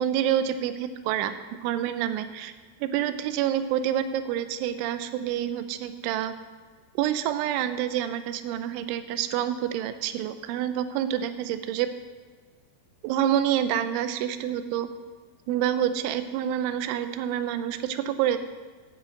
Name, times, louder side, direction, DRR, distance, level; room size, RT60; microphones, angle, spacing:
voice 1, 0.0-1.3 1.6-2.5 2.8-6.3 7.0-11.9 13.0-14.9 15.5-18.4, right 10 dB, 85° right, 10 dB, 3.1 m, -27 dB
13.0 x 5.8 x 8.1 m, 1.4 s
omnidirectional pair, 5.4 m